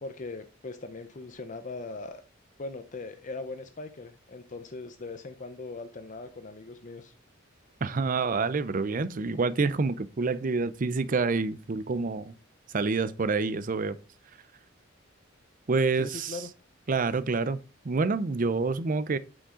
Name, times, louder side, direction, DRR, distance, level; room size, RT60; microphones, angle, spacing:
voice 1, 0.0-2.2 2.6-7.1 16.0-16.5, left 3 dB, 40° left, 0.6 m, -40 dB
voice 2, 7.8-12.3 12.7-14.0 15.7-16.4 16.9-17.6 17.8-19.2, right 4 dB, 40° right, 0.5 m, -27 dB
8.5 x 5.1 x 3.8 m
head